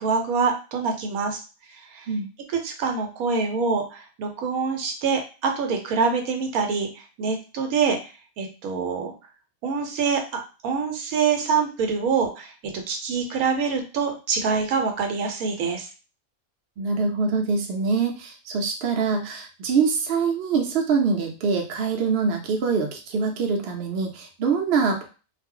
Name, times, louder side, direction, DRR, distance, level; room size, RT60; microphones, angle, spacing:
voice 1, 0.0-1.4 1.7-2.1 2.6-8.0 8.4-9.1 9.6-12.5 12.9-15.9, right 5 dB, 80° right, 4 dB, 1.1 m, -25 dB
voice 2, 16.8-25.1, right 5 dB, 55° right, 2 dB, 0.7 m, -24 dB
2.5 x 2.1 x 3.6 m, 0.33 s
omnidirectional pair, 1.5 m